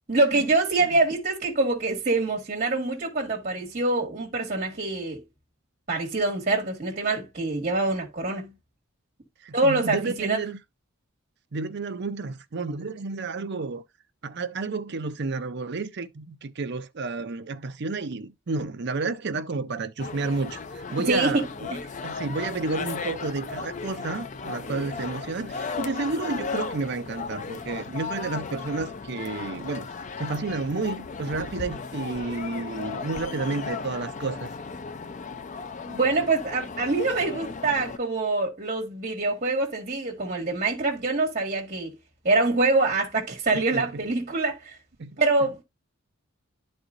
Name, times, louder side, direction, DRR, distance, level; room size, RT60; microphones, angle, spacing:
voice 1, 0.1-5.2 5.9-8.5 9.5-10.4 21.0-21.4 21.7-21.8 35.9-42.0 42.2-44.8 45.2-45.6, right 3 dB, 40° right, 1.7 m, -25 dB
voice 2, 9.4-10.6 11.5-13.8 14.2-21.5 22.0-34.5 43.5-44.0 45.0-45.2, right 3 dB, 55° right, 0.6 m, -31 dB
sound 1, 20.0-38.0, left 5 dB, 35° left, 0.5 m, -36 dB
11.5 x 4.4 x 2.5 m
head